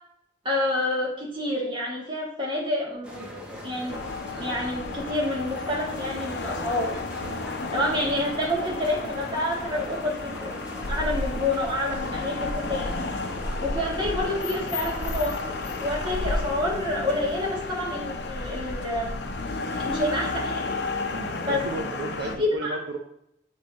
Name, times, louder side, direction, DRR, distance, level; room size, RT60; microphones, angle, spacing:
voice 1, 0.4-3.3 3.6-4.0 4.3-7.0 7.7-10.5 10.9-13.0 13.6-15.4 15.7-19.1 19.8-20.6 21.4-21.6 22.2-22.8, left 1 dB, 25° right, -5 dB, 1.9 m, -28 dB
sound 1, 3.0-16.4, left 1 dB, 5° right, 1.1 m, -41 dB
sound 2, 3.9-22.4, left 3 dB, 60° left, 0.7 m, -32 dB
voice 2, 21.1-23.0, right 2 dB, 70° right, 4 dB, 0.6 m, -34 dB
8.2 x 3.4 x 4.1 m, 0.77 s
head